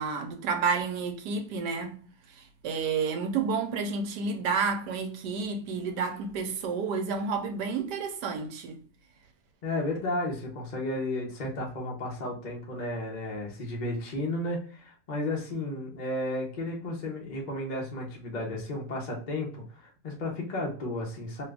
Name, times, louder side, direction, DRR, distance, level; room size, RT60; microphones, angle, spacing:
voice 1, 0.0-2.0 2.4-8.8, right 5 dB, 80° right, 1.2 m, -30 dB
voice 2, 9.6-21.4, left 1 dB, 40° left, 0.6 m, -33 dB
3.0 x 2.4 x 3.3 m
omnidirectional pair, 1.9 m